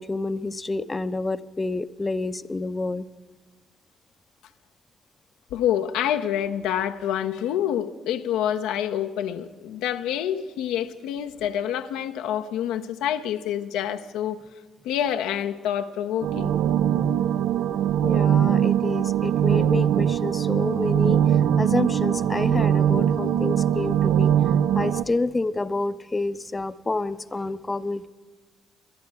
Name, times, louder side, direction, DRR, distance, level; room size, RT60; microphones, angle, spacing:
voice 1, 0.0-3.1 18.0-21.2 21.6-24.3 24.7-28.1, left 2 dB, 25° left, 0.6 m, -28 dB
voice 2, 5.5-14.4 14.8-16.5, left 10 dB, 70° left, 0.5 m, -27 dB
sound 1, 16.2-25.0, right 10 dB, 65° right, 0.4 m, -21 dB
22.5 x 11.0 x 4.7 m
hypercardioid pair, 45°, 0 cm